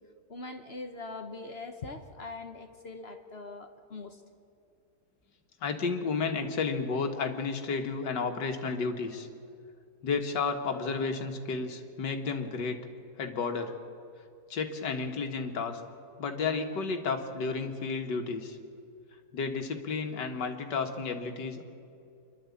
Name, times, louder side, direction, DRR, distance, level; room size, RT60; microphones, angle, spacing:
voice 1, 0.3-4.2, left 3 dB, 45° left, 7 dB, 1.0 m, -42 dB
voice 2, 5.6-9.3 10.0-12.8 13.2-13.7 14.5-15.8 16.2-18.6 19.3-21.6, left 4 dB, 75° left, 5 dB, 2.1 m, -32 dB
26.0 x 12.0 x 8.4 m, 2.5 s
omnidirectional pair, 1.9 m